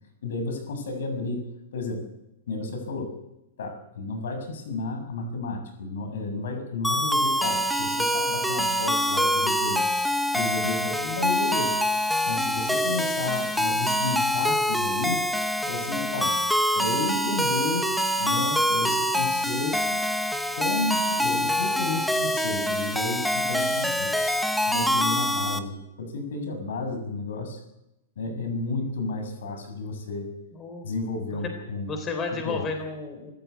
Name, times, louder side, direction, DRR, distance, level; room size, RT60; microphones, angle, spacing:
voice 1, 0.2-2.1 2.5-3.2 3.6-9.8 10.3-11.8 12.3-15.3 15.7-16.3 16.8-19.8 20.5-24.1 24.7-27.6 28.2-30.3 30.8-31.9 32.3-32.7, left 3 dB, 75° left, 7 dB, 7.3 m, -32 dB
sound 1, 6.8-25.6, equal, ahead, 1.1 m, -25 dB
voice 2, 16.0-16.3 30.6-30.9 31.9-33.3, left 4 dB, 20° left, 6 dB, 3.6 m, -32 dB
25.5 x 15.0 x 8.4 m, 0.90 s
hypercardioid pair, 160°, 0 cm